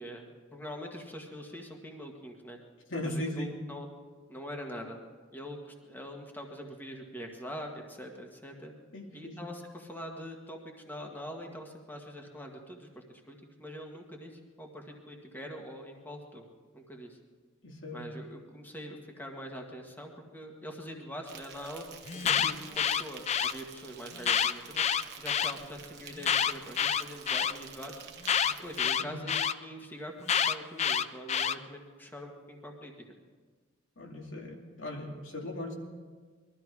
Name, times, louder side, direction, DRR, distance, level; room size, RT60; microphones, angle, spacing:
voice 1, 0.0-2.6 3.0-3.9 4.3-5.0 5.3-8.7 9.1-16.4 16.7-17.2 17.9-21.8 22.1-24.9 25.2-27.9 28.4-32.9, equal, 10° left, 2 dB, 1.7 m, -44 dB
voice 2, 2.9-3.5 8.9-9.4 17.6-18.1 22.2-22.4 29.0-29.2 34.0-35.7, left 1 dB, 80° left, 0 dB, 2.6 m, -38 dB
Insect, 21.3-28.8, right 7 dB, 55° right, 1.3 m, -49 dB
Alarm, 22.1-23.5 24.2-25.5 26.2-27.5 28.3-29.5 30.3-31.6, left 8 dB, 35° left, 0.4 m, -27 dB
21.5 x 13.5 x 4.8 m, 1.5 s
head